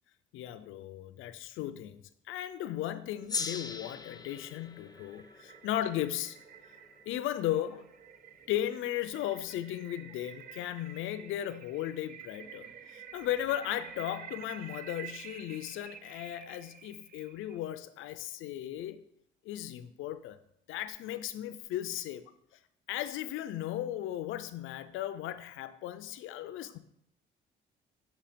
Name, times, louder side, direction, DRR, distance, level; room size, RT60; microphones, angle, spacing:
voice 1, 0.3-2.0 2.3-6.4 7.1-7.8 8.5-19.0 19.4-20.4 20.7-22.2 22.9-26.8, left 12 dB, 85° left, 0.4 m, -36 dB
Gong, 3.3-8.0, left 4 dB, 20° left, 0.4 m, -41 dB
sound 1, 4.3-17.6, right 8 dB, 50° right, 0.5 m, -50 dB
7.0 x 2.9 x 5.0 m
cardioid pair, 90°, 20 cm